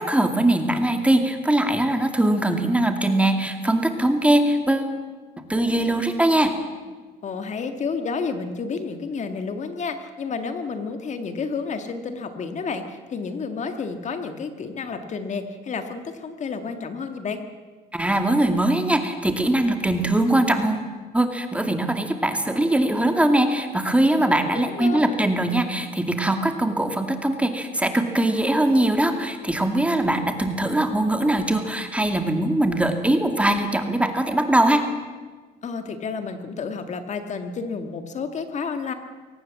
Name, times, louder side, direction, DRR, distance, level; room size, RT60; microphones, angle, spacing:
voice 1, 0.0-4.9 5.4-6.5 17.9-20.9 21.1-34.8, right 1 dB, 5° right, 6 dB, 2.4 m, -21 dB
voice 2, 7.2-17.4 24.5-25.0 35.6-38.9, left 5 dB, 45° left, 7 dB, 1.9 m, -30 dB
23.5 x 18.5 x 7.6 m, 1.4 s
cardioid pair, 110°, 17 cm